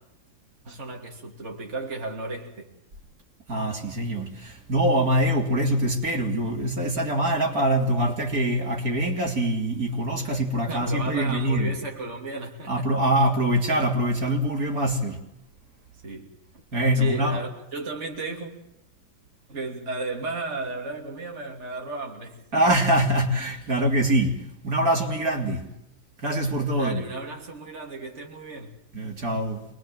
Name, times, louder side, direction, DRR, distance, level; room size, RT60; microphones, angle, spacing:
voice 1, 0.6-2.7 10.7-12.8 16.0-16.3 16.9-18.5 19.5-22.6 26.7-28.8, right 3 dB, 45° right, 3.1 m, -34 dB
voice 2, 3.5-11.8 12.7-15.2 16.7-17.4 22.5-25.7 26.2-27.0 28.9-29.7, right 1 dB, 60° right, 3.6 m, -24 dB
27.0 x 21.5 x 7.6 m
omnidirectional pair, 1.7 m